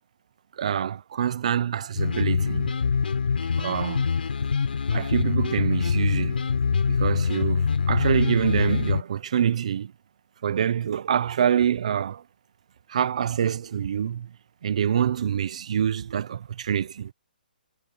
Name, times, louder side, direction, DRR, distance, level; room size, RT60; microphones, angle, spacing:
voice 1, 0.6-2.7 3.6-4.1 4.9-6.4 6.9-9.9 10.4-12.2 12.9-14.3 14.6-17.1, right 9 dB, 40° right, 0.7 m, -26 dB
sound 1, 2.0-9.0, left 6 dB, 75° left, 3.9 m, -24 dB
hypercardioid pair, 175°, 5 cm